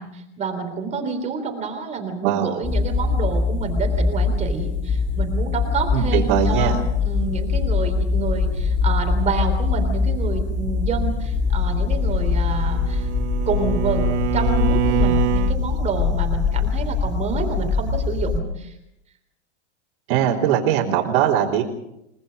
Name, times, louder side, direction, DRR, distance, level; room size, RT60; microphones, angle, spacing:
voice 1, 0.0-6.7 7.0-13.1 13.5-18.8, right 5 dB, 20° right, 4 dB, 3.5 m, -28 dB
voice 2, 2.2-2.6 5.9-6.8 20.1-21.6, right 9 dB, 55° right, -6 dB, 3.8 m, -20 dB
sound 1, 2.6-18.4, left 5 dB, 20° left, 2.3 m, -22 dB
Bowed string instrument, 12.2-15.6, right 16 dB, 75° right, 1.0 m, -25 dB
29.5 x 19.0 x 5.3 m, 0.84 s
supercardioid pair, 145°, 35 cm